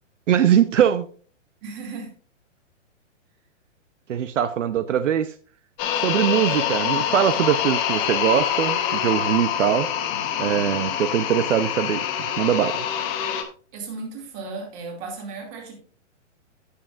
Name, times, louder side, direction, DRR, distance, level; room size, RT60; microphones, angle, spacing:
voice 1, 0.3-1.1 4.1-5.3 6.0-9.9 10.4-12.0 12.4-12.8, right 9 dB, 75° right, 0.8 m, -21 dB
voice 2, 1.6-2.1 13.7-15.7, right 4 dB, 25° right, 2.6 m, -35 dB
sound 1, 5.8-13.4, left 9 dB, 15° left, 0.7 m, -25 dB
15.5 x 6.6 x 2.5 m
hypercardioid pair, 165°, 38 cm